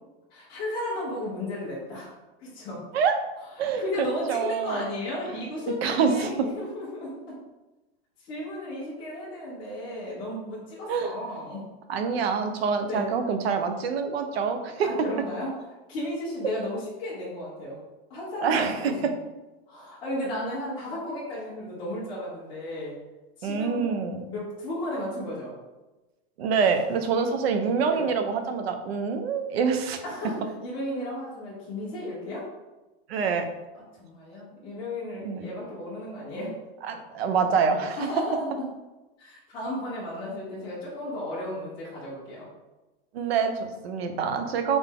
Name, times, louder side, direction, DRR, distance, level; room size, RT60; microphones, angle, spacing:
voice 1, 0.3-2.1 2.4-2.8 3.8-7.2 8.2-11.6 12.9-13.1 14.8-15.5 15.9-17.8 18.1-18.9 19.7-23.0 23.4-23.9 24.2-25.5 27.1-27.2 27.8-28.1 30.0-32.5 34.0-36.5 38.0-38.5 39.2-42.4, left 1 dB, 15° left, -9 dB, 1.2 m, -34 dB
voice 2, 3.6-4.9 5.8-6.3 10.9-11.1 11.9-14.9 18.4-18.9 23.4-24.2 26.4-30.0 33.1-33.5 35.2-35.5 36.8-38.1 43.1-44.8, right 5 dB, 75° right, 6 dB, 0.8 m, -26 dB
4.0 x 3.5 x 3.6 m, 1.1 s
supercardioid pair, 180°, 31 cm